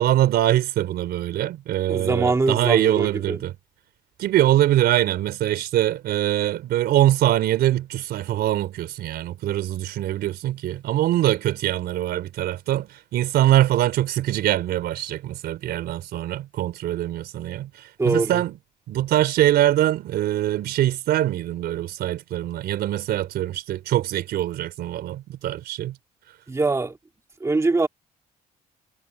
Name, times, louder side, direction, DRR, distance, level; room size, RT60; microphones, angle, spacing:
voice 1, 0.0-3.5 4.2-18.6 18.9-26.0, right 13 dB, 70° right, 4.1 m, -23 dB
voice 2, 1.9-3.4 18.0-18.4 26.5-27.0 27.4-27.9, right 3 dB, 15° right, 1.8 m, -23 dB
cardioid pair, 110°, 17 cm